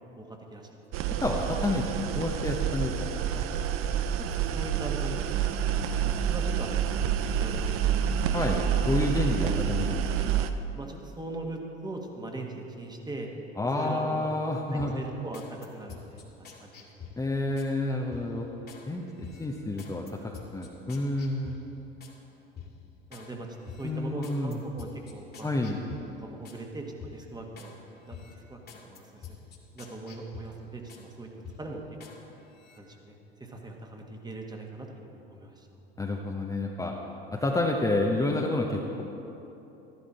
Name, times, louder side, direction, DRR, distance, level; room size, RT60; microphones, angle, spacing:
voice 1, 0.2-0.7 4.2-5.5 5.9-8.1 9.4-9.6 10.7-13.3 13.7-14.3 14.7-17.1 23.1-25.5 26.2-27.7 28.0-29.4 29.7-31.3 31.6-31.8 32.1-32.2 32.8-35.8, right 2 dB, 15° right, 2 dB, 1.6 m, -41 dB
sound 1, 0.9-10.5, right 8 dB, 45° right, 0.7 m, -28 dB
voice 2, 1.2-3.2 3.5-3.6 8.3-10.0 13.6-15.0 17.2-18.5 18.9-20.0 20.5-21.5 23.8-24.6 25.4-25.8 36.0-36.9 37.3-39.0, left 2 dB, 10° left, -1 dB, 1.0 m, -29 dB
sound 2, 14.8-17.7 18.1-18.8 19.2-22.2 22.6-23.3 23.6-26.6 27.0-27.7 28.1-31.1 31.4-32.2 32.5-32.8, left 7 dB, 35° left, 2.2 m, -48 dB
13.5 x 11.5 x 4.3 m, 3.0 s
hypercardioid pair, 70°, 30 cm